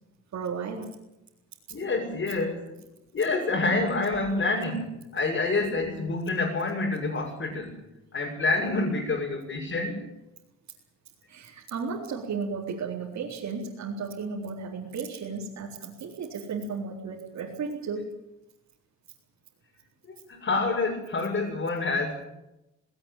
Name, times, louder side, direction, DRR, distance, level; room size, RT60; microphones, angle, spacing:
voice 1, 0.3-0.9 11.3-18.0, right 5 dB, 65° right, -3 dB, 4.1 m, -34 dB
voice 2, 1.7-2.8 3.1-7.8 8.1-10.0 20.0-22.3, left 3 dB, 45° left, -2 dB, 7.1 m, -27 dB
19.5 x 18.5 x 9.1 m, 0.92 s
cardioid pair, 90°, 30 cm